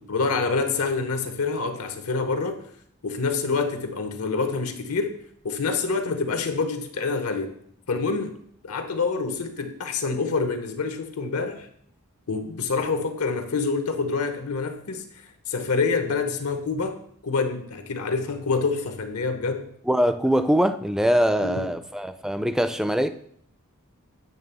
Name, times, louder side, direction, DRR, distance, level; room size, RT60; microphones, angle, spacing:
voice 1, 0.1-2.6 3.0-5.2 5.4-7.5 7.9-8.4 8.6-11.7 12.3-15.0 15.5-17.0 17.2-19.7 21.4-21.7, left 4 dB, 85° left, 7 dB, 1.0 m, -26 dB
voice 2, 19.9-23.1, equal, ahead, 10 dB, 0.3 m, -22 dB
9.0 x 3.4 x 6.8 m, 0.67 s
head